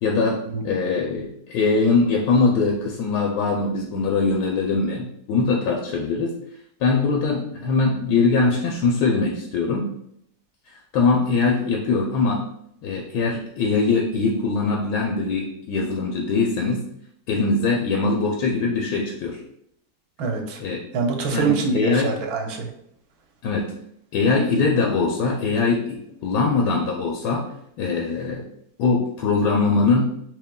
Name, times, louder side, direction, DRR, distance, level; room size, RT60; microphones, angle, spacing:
voice 1, 0.0-6.3 6.8-9.9 10.9-12.5 12.8-16.8 17.3-19.4 20.6-20.8 21.3-22.1 23.4-23.7 24.1-27.5 27.8-28.4 28.8-30.1, left 4 dB, 85° left, 0 dB, 1.2 m, -22 dB
voice 2, 20.2-20.6 20.9-22.7, right 5 dB, 75° right, 3 dB, 1.0 m, -25 dB
4.4 x 3.1 x 2.2 m, 0.74 s
omnidirectional pair, 1.7 m